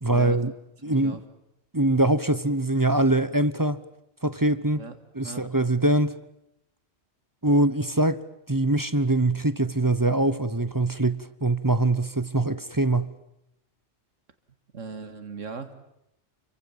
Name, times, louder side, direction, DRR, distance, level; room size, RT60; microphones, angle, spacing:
voice 1, 0.0-0.5 0.8-1.2 1.7-3.8 4.2-4.8 5.1-6.2 7.4-8.2 8.5-13.1, right 2 dB, 20° right, 1.0 m, -23 dB
voice 2, 0.9-1.2 4.8-5.0 5.2-5.5 14.7-15.7, right 4 dB, 85° right, 2.4 m, -38 dB
29.5 x 24.5 x 7.4 m
omnidirectional pair, 1.3 m